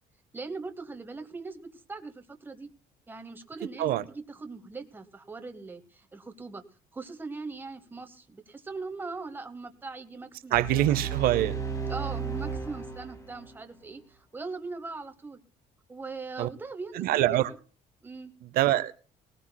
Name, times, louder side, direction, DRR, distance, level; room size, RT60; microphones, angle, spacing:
voice 1, 0.3-2.7 3.1-6.6 6.9-11.0 11.9-15.4 15.9-17.2 18.0-18.3, right 3 dB, 15° right, 8 dB, 0.9 m, -40 dB
sound 1, 10.5-13.6, right 6 dB, 20° left, 2.0 m, -34 dB
voice 2, 10.5-11.6 16.4-16.5 16.9-17.5 18.4-18.9, right 13 dB, 70° right, 15 dB, 0.6 m, -24 dB
19.5 x 17.5 x 2.2 m, 0.38 s
cardioid pair, 145°, 16 cm